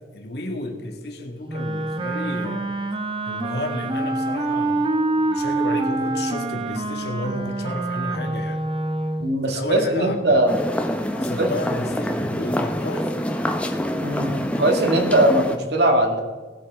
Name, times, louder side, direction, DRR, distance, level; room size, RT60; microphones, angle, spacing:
voice 1, 0.0-2.7 3.3-8.6 9.4-10.4 11.2-13.1, left 1 dB, 65° left, 1.9 m, -32 dB
Wind instrument woodwind instrument, 1.5-9.3, right 2 dB, 30° right, 0.9 m, -26 dB
voice 2, 9.2-10.6 11.4-11.5 14.0-14.3 14.6-16.2, right 1 dB, 65° right, 1.8 m, -20 dB
sound 1, 10.5-15.6, equal, 5° left, 0.8 m, -26 dB
19.0 x 8.6 x 3.6 m
head